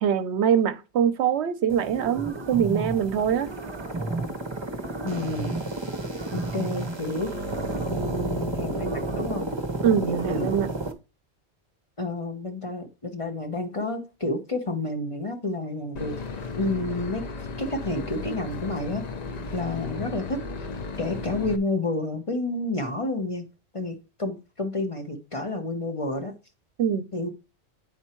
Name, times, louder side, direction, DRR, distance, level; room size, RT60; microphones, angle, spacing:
voice 1, 0.0-3.5 9.8-10.7 26.8-27.0, right 8 dB, 75° right, 0.9 m, -23 dB
sound 1, 1.7-10.9, right 2 dB, 25° right, 0.9 m, -31 dB
voice 2, 5.0-5.5 6.5-7.3 7.9-9.5 10.1-10.5 12.0-16.2 16.6-17.2 17.6-19.0 19.5-20.7 21.0-23.5 23.7-26.3 27.1-27.3, left 2 dB, 30° left, 1.1 m, -30 dB
Boat Water vehicle / Engine, 16.0-21.6, left 4 dB, 45° left, 0.6 m, -35 dB
9.3 x 4.4 x 4.4 m
omnidirectional pair, 1.2 m